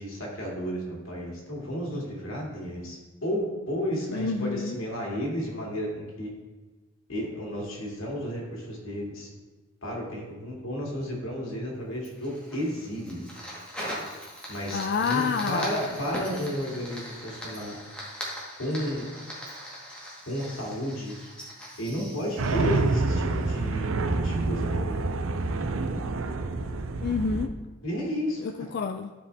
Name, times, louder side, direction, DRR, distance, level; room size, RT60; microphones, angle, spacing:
voice 1, 0.0-6.3 7.1-9.3 9.8-13.2 14.5-17.8 18.6-19.1 20.3-21.1 21.8-23.9 24.2-25.0 27.8-28.4, equal, 90° left, -2 dB, 2.5 m, -32 dB
voice 2, 4.1-4.8 14.7-15.9 27.0-27.5 28.4-29.1, left 5 dB, 55° left, 6 dB, 0.3 m, -28 dB
Fire, 12.0-23.4, equal, 5° left, 1.7 m, -40 dB
sound 1, 22.4-27.5, right 3 dB, 90° right, 0.6 m, -27 dB
13.0 x 4.9 x 3.4 m, 1.2 s
head